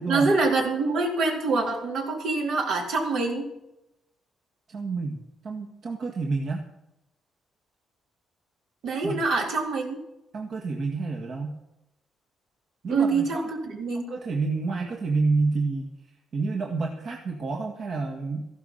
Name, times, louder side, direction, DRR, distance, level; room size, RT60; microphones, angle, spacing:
voice 1, 0.1-3.5 8.8-10.0 12.9-14.0, right 3 dB, 80° right, 0 dB, 3.9 m, -25 dB
voice 2, 4.7-5.2 5.4-6.6 9.0-9.2 10.3-11.6 12.8-13.4 14.1-15.9 16.3-18.5, right 3 dB, 55° right, 1 dB, 1.8 m, -28 dB
14.5 x 12.0 x 5.7 m, 0.88 s
cardioid pair, 90°, 0 cm